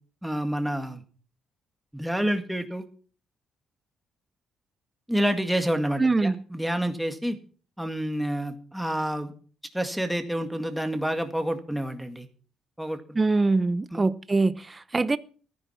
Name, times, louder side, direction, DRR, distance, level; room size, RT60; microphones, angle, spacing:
voice 1, 0.2-1.0 1.9-2.8 5.1-7.4 7.8-9.3 9.7-12.3 12.8-13.0 13.9-14.0, equal, 5° right, 1.9 m, -28 dB
voice 2, 6.0-6.4 13.1-15.2, right 3 dB, 25° right, 0.7 m, -23 dB
14.5 x 10.5 x 5.7 m
cardioid pair, 90°, 0 cm